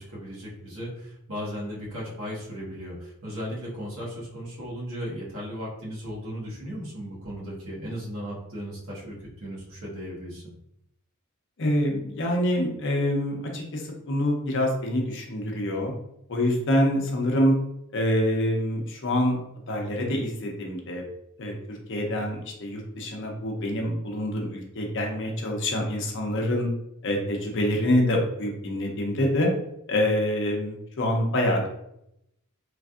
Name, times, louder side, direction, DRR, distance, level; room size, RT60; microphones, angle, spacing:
voice 1, 0.0-10.5, equal, 65° right, -6 dB, 1.2 m, -36 dB
voice 2, 11.6-15.9 16.3-17.5 17.9-19.4 19.7-21.0 21.4-26.7 27.0-29.5 29.9-31.7, left 1 dB, 60° left, 0 dB, 0.6 m, -26 dB
3.2 x 2.5 x 2.4 m, 0.80 s
head